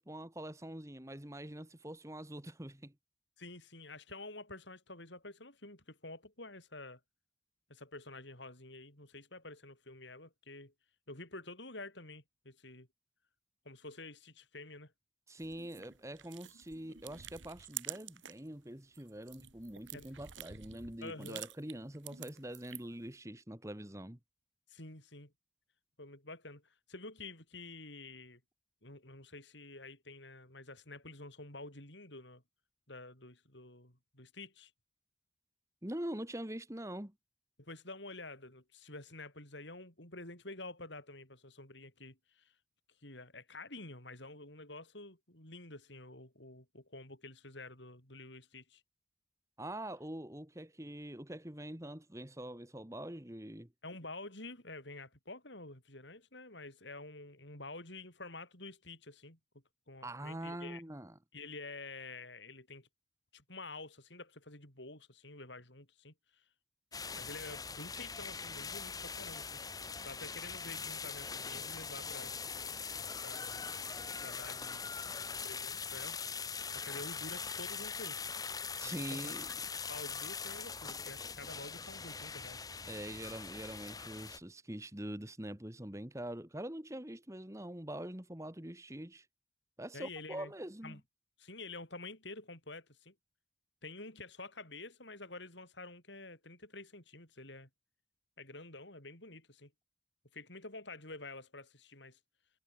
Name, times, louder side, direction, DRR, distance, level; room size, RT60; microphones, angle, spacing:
voice 1, 0.0-2.9 15.3-24.2 35.8-37.1 49.6-53.7 60.0-61.1 78.8-79.5 82.9-89.3 89.8-91.0, right 1 dB, 15° right, 1.5 m, -44 dB
voice 2, 3.4-7.0 7.7-10.7 11.1-12.9 13.6-14.9 19.9-20.1 21.0-21.4 24.7-25.3 26.0-28.4 28.8-32.4 32.9-34.7 37.6-42.5 43.0-48.8 53.8-59.4 59.9-60.8 61.3-62.9 63.3-66.1 67.1-69.6 70.0-72.4 73.2-73.8 74.2-74.9 75.3-76.3 76.7-78.2 78.8-79.3 79.7-82.6 89.9-90.5 90.8-91.0 91.4-93.1 93.8-97.7 98.4-99.7 100.3-102.2, left 2 dB, 70° left, 7.8 m, -49 dB
sound 1, 15.4-18.5 18.8-23.0, right 11 dB, 75° right, 1.7 m, -49 dB
sound 2, 66.9-84.4, left 5 dB, 20° left, 1.1 m, -42 dB
head